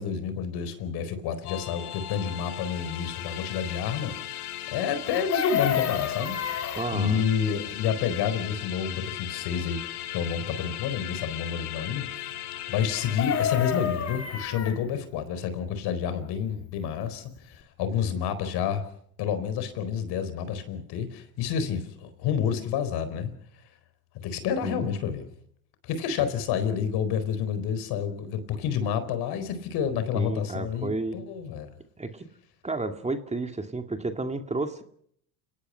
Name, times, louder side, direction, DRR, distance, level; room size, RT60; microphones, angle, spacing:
voice 1, 0.0-4.2 4.7-9.8 10.1-12.3 12.7-18.9 19.2-23.3 24.2-25.3 25.8-31.7, left 7 dB, 60° left, 11 dB, 4.4 m, -29 dB
sound 1, 1.4-14.5, left 13 dB, 85° left, 2.2 m, -38 dB
Chicken rooster, 5.1-6.9 12.9-14.8 17.0-17.1 17.4-17.6, left 9 dB, 35° left, 3.4 m, -29 dB
voice 2, 6.8-7.2 24.6-24.9 26.2-26.3 30.1-31.2 32.0-32.3 32.6-34.8, right 3 dB, 15° right, 7 dB, 2.2 m, -31 dB
29.5 x 18.5 x 5.7 m, 0.66 s
hypercardioid pair, 85°, 44 cm